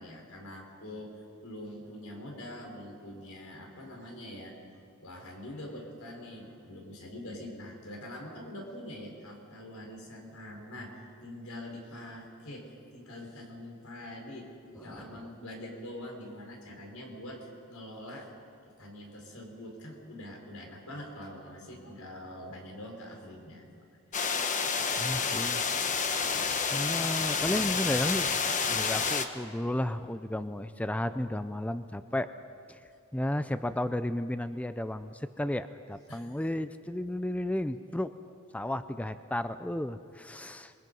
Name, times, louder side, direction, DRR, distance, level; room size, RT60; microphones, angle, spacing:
voice 1, 0.0-4.5 5.0-18.3 18.8-23.8 36.1-36.4, left 1 dB, 85° left, 1 dB, 4.7 m, -44 dB
voice 2, 14.9-15.2 25.0-25.6 26.7-28.3 28.7-32.3 32.7-32.8 33.1-38.1 38.5-40.7, left 1 dB, 5° left, 11 dB, 0.4 m, -33 dB
sound 1, 24.1-29.3, left 5 dB, 35° left, 1.1 m, -29 dB
27.0 x 21.5 x 5.4 m, 2.6 s
head